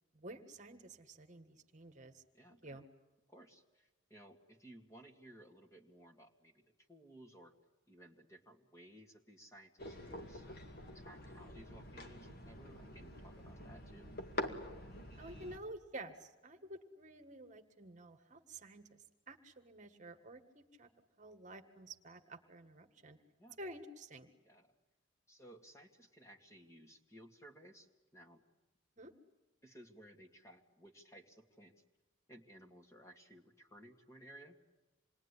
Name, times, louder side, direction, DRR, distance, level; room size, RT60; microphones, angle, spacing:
voice 1, 0.1-2.2 2.6-2.8 15.2-19.0 19.3-20.9 21.2-23.2 23.6-24.3 29.0-29.1, right 1 dB, 40° right, 6 dB, 1.7 m, -51 dB
voice 2, 2.3-2.8 3.3-7.5 7.9-10.6 10.9-14.1 23.4-23.6 24.4-24.7 25.3-28.4 29.6-31.7 32.3-34.6, right 1 dB, 15° left, 3 dB, 2.3 m, -58 dB
sound 1, 9.8-15.6, left 1 dB, 50° left, 2.2 m, -46 dB
27.5 x 21.0 x 10.0 m, 1.1 s
head